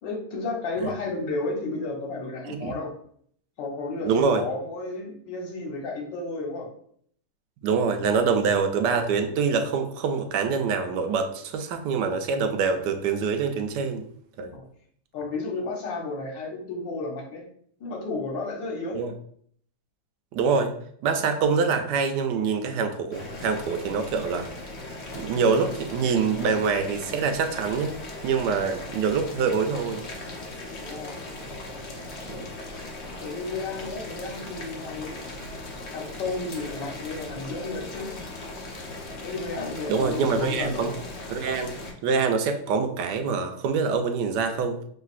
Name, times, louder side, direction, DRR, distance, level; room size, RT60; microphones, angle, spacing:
voice 1, 0.0-2.9 3.6-6.7 14.4-14.6 15.1-17.4 17.8-19.0 30.8-31.2 32.3-32.4 33.2-35.2 35.9-38.1 39.2-40.9, left 3 dB, 75° left, 1 dB, 1.6 m, -32 dB
voice 2, 2.4-2.7 4.0-4.4 7.6-14.0 14.4-14.6 18.9-19.1 20.3-20.7 21.0-24.5 25.1-30.0 32.3-32.4 39.9-40.9 41.3-41.7 42.0-44.8, right 5 dB, 75° right, 6 dB, 1.1 m, -25 dB
Boiling, 23.1-41.9, left 2 dB, 50° left, 0.8 m, -38 dB
5.6 x 3.2 x 2.4 m, 0.63 s
omnidirectional pair, 2.0 m